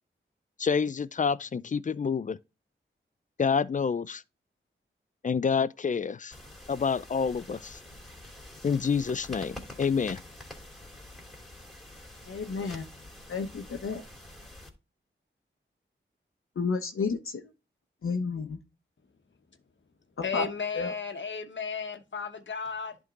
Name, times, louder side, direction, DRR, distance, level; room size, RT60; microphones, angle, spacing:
voice 1, 0.6-2.4 3.4-4.2 5.2-6.4 6.7-7.8 8.6-10.2, left 6 dB, 40° left, 0.4 m, -28 dB
sound 1, 6.3-14.7, left 1 dB, ahead, 2.7 m, -47 dB
voice 2, 12.3-12.9 13.3-14.0 16.6-17.4 18.0-18.6 20.3-20.4 20.8-20.9, left 4 dB, 85° left, 0.9 m, -31 dB
voice 3, 20.2-23.0, left 5 dB, 60° left, 1.1 m, -34 dB
11.0 x 3.7 x 3.8 m
wide cardioid pair, 65°, 21 cm